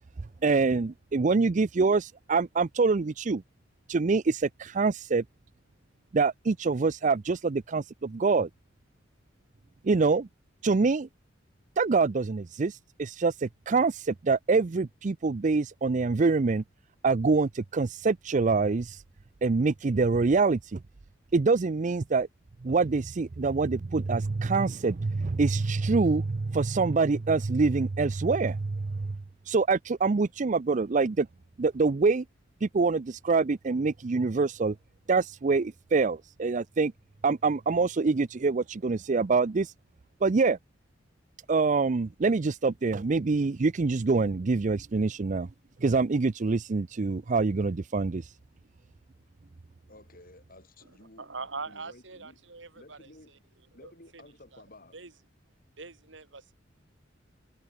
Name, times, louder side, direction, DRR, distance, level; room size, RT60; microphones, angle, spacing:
voice 1, 0.4-3.4 3.9-5.2 6.1-8.5 9.8-10.3 10.6-11.1 11.8-16.6 17.0-19.0 19.4-20.8 21.3-22.3 22.6-29.2 29.5-31.3 31.6-32.2 32.6-34.8 35.1-36.9 37.2-39.7 40.2-40.6 41.5-45.5 45.8-48.2, right 4 dB, 40° right, 0.5 m, -25 dB
voice 2, 49.9-52.4 52.7-53.5 53.7-55.0, left 2 dB, 50° left, 5.1 m, -54 dB
voice 3, 51.2-53.1 53.8-54.2 54.5-54.6 54.9-55.1 55.8-56.5, right 4 dB, 75° right, 2.3 m, -42 dB
head